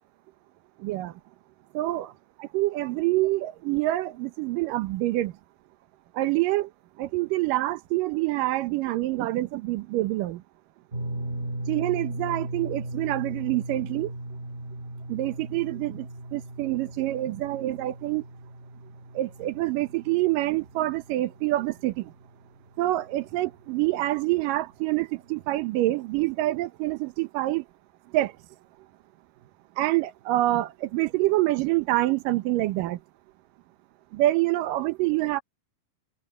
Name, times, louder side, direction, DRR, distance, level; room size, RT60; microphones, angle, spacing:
voice 1, 0.8-1.1 1.7-2.1 2.4-5.3 6.2-6.7 7.0-10.4 11.7-14.1 15.1-16.1 16.3-18.2 19.2-22.1 22.8-27.6 28.1-28.3 29.8-33.0 34.1-35.4, right 17 dB, 75° right, 2.4 m, -26 dB
sound 1, 10.9-23.2 23.4-23.7 25.3-25.4, right 1 dB, 25° right, 2.1 m, -38 dB
omnidirectional pair, 4.2 m